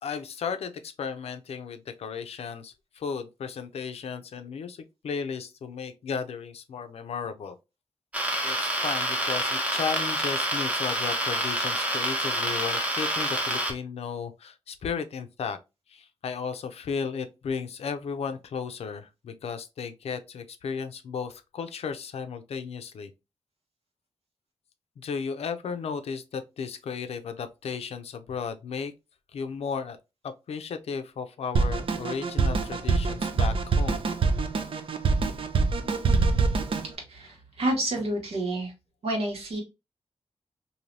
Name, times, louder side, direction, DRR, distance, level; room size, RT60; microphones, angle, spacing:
voice 1, 0.0-7.6 8.4-15.6 15.9-23.1 25.0-28.9 29.3-30.0 30.2-34.0, left 6 dB, 90° left, 0.5 m, -34 dB
sound 1, 8.1-13.7, right 1 dB, 15° right, 0.9 m, -27 dB
Drum kit, 31.6-36.9, right 4 dB, 60° right, 0.5 m, -25 dB
voice 2, 37.1-38.7 39.0-39.6, right 1 dB, 80° right, 1.3 m, -29 dB
3.2 x 2.7 x 2.6 m
wide cardioid pair, 115°, 10 cm